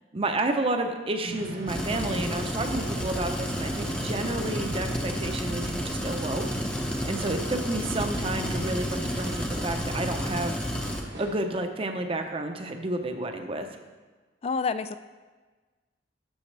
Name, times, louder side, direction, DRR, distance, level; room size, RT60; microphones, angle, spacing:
voice 1, 0.1-6.5 7.1-10.6 11.2-13.7, right 2 dB, 30° right, 6 dB, 0.7 m, -30 dB
sound 1, 1.2-12.6, left 1 dB, 75° left, 1.6 m, -44 dB
sound 2, 1.3-11.3, right 2 dB, 75° right, 1.2 m, -45 dB
sound 3, 1.7-11.0, equal, 5° left, 0.8 m, -31 dB
voice 2, 14.4-15.0, left 4 dB, 35° left, 11 dB, 0.3 m, -28 dB
12.5 x 6.2 x 3.3 m, 1.3 s
head